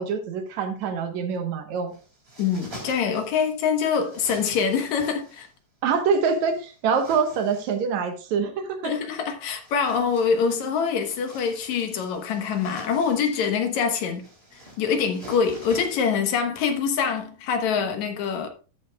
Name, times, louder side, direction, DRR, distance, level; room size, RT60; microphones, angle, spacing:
voice 1, 0.0-1.9 5.8-8.9, right 5 dB, 75° right, 2.5 m, -25 dB
sound 1, 1.9-3.5 3.8-5.5 6.2-7.8 9.4-15.9, right 1 dB, 20° right, 3.4 m, -47 dB
voice 2, 2.4-5.5 8.8-14.2 14.8-18.5, left 6 dB, 75° left, 2.6 m, -25 dB
13.5 x 8.3 x 2.3 m
omnidirectional pair, 3.3 m